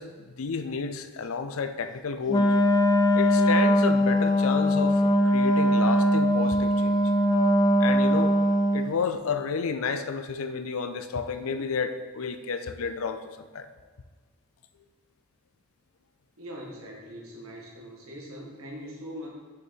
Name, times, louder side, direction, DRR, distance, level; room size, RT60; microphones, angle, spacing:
voice 1, 0.0-2.5 3.1-7.0 7.8-8.4 8.7-13.7, left 5 dB, 75° left, 9 dB, 0.5 m, -31 dB
Wind instrument woodwind instrument, 2.3-8.9, equal, 20° left, 0.4 m, -21 dB
voice 2, 16.4-19.3, equal, 70° right, -2 dB, 1.9 m, -41 dB
6.5 x 6.1 x 4.5 m, 1.5 s
head